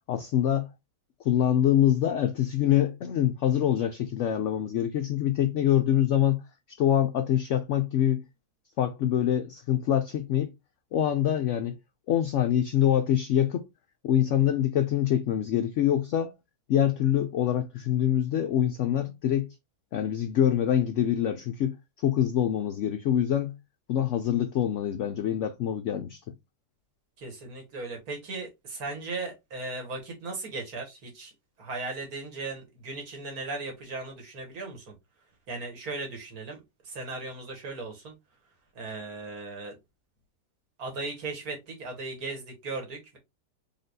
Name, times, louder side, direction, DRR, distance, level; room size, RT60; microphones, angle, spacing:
voice 1, 0.1-0.7 1.2-6.4 6.7-8.2 8.8-10.5 10.9-11.8 12.1-13.7 14.0-16.3 16.7-19.6 19.9-23.5 23.9-26.2, left 10 dB, 75° left, 0.6 m, -25 dB
voice 2, 27.2-31.3 31.6-34.9 35.5-38.1 38.8-39.7 40.8-43.2, right 3 dB, 65° right, 1.9 m, -37 dB
4.1 x 3.5 x 2.6 m
omnidirectional pair, 1.8 m